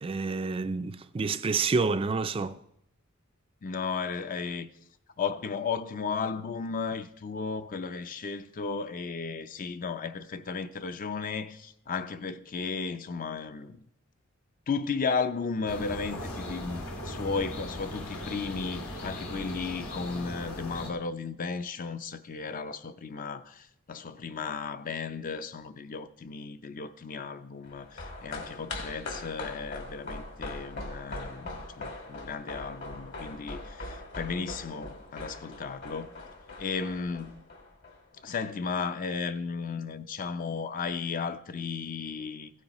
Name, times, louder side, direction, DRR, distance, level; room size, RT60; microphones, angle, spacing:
voice 1, 0.0-2.6, right 4 dB, 25° right, 0.3 m, -28 dB
voice 2, 3.6-4.7 5.2-13.8 14.7-36.1 36.6-37.4 38.2-42.5, left 5 dB, 40° left, 0.5 m, -34 dB
sound 1, 15.7-20.9, left 1 dB, 85° left, 1.8 m, -38 dB
sound 2, 27.6-38.2 38.5-38.6, left 2 dB, 55° left, 2.2 m, -41 dB
16.0 x 9.2 x 3.0 m
head